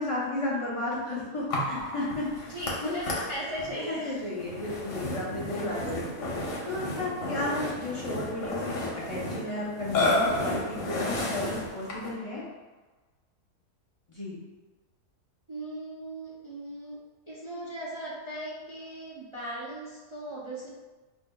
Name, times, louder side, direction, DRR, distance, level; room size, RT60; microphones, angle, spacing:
voice 1, 0.0-2.5 2.8-3.0 3.8-6.0 6.7-12.4 14.1-14.4, left 2 dB, 45° left, -7 dB, 0.4 m, -33 dB
Burping eructation, 1.5-12.2, left 2 dB, 65° left, 1.0 m, -32 dB
voice 2, 2.5-4.3 5.7-5.9 15.5-17.0 17.3-20.7, right 1 dB, 45° right, -8 dB, 0.3 m, -37 dB
4.7 x 2.6 x 2.2 m, 1.2 s
omnidirectional pair, 1.6 m